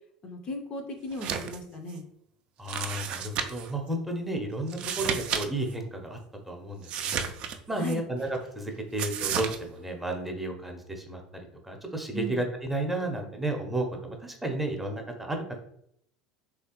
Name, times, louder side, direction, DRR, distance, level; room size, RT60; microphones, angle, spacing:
voice 1, 0.2-2.0 7.8-8.1 12.1-12.4, equal, 40° left, 4 dB, 0.5 m, -36 dB
sound 1, 1.1-1.6 1.9-2.0 2.7-3.7 4.7-5.5 5.7-5.8 6.8-7.9 9.0-9.6, right 7 dB, 45° right, 0.3 m, -32 dB
voice 2, 2.6-6.2 6.5-7.3 7.7-11.2 11.6-15.6, right 1 dB, 5° right, 2 dB, 0.7 m, -32 dB
3.2 x 2.3 x 2.9 m, 0.72 s
figure-of-eight pair, 70°, 2 cm